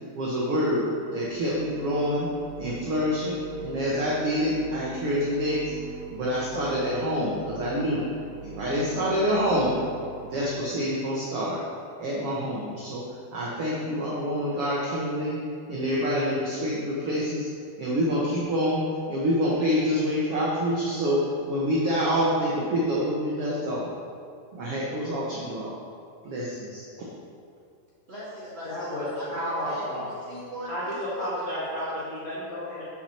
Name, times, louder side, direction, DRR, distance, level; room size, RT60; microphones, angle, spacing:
voice 1, 0.1-0.8 1.1-2.3 2.6-5.7 6.1-8.0 8.4-9.8 10.3-11.6 12.0-13.0 13.3-15.4 15.7-17.5 17.8-18.8 19.1-21.2 21.5-23.9 24.5-25.7 26.2-27.1, equal, 60° right, -5 dB, 1.5 m, -27 dB
sound 1, 1.1-10.8, right 4 dB, 80° right, 3.3 m, -42 dB
voice 2, 28.1-31.9, equal, 35° right, -8 dB, 1.0 m, -40 dB
voice 3, 28.6-30.1 30.7-32.8, equal, 45° left, -10 dB, 3.1 m, -32 dB
13.5 x 6.1 x 4.4 m, 2.3 s
omnidirectional pair, 4.4 m